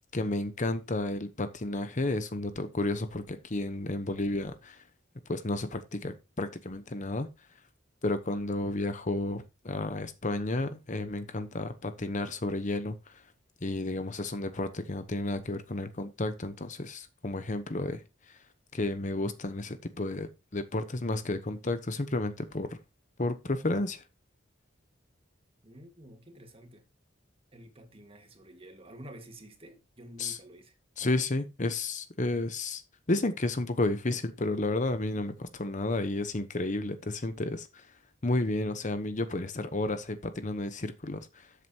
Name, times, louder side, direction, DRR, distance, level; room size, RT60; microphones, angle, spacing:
voice 1, 0.1-4.8 5.3-7.3 8.0-13.2 13.6-18.4 18.7-22.8 23.2-24.0 30.2-30.4 31.0-32.8 33.1-37.9 38.2-41.5, left 2 dB, 40° left, 1.0 m, -32 dB
voice 2, 25.6-26.9 27.5-30.8, right 1 dB, 30° right, 1.9 m, -50 dB
13.0 x 7.9 x 2.9 m
head